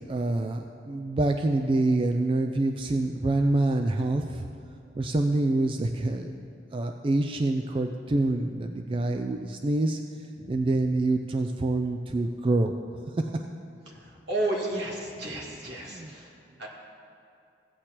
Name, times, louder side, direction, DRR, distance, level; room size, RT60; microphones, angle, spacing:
voice 1, 0.1-4.4 5.0-6.3 6.7-10.0 10.5-12.7 13.2-13.3 15.9-16.1, right 2 dB, 30° right, 5 dB, 0.3 m, -26 dB
voice 2, 13.9-16.7, right 2 dB, 75° right, -3 dB, 2.1 m, -33 dB
16.0 x 8.2 x 3.0 m, 2.5 s
head